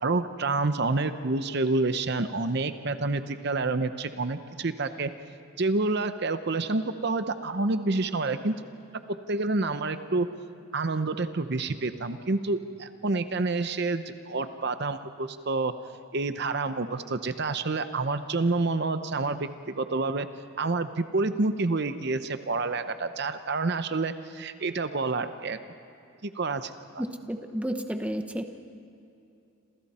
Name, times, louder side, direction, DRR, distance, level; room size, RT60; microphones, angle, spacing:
voice 1, 0.0-5.1 5.6-8.5 9.3-10.3 10.7-15.7 16.1-20.3 20.6-25.6 26.2-27.0, right 3 dB, 55° right, 10 dB, 0.8 m, -28 dB
voice 2, 27.0-28.4, equal, 5° right, 6 dB, 1.0 m, -32 dB
28.0 x 27.5 x 4.3 m, 2.7 s
head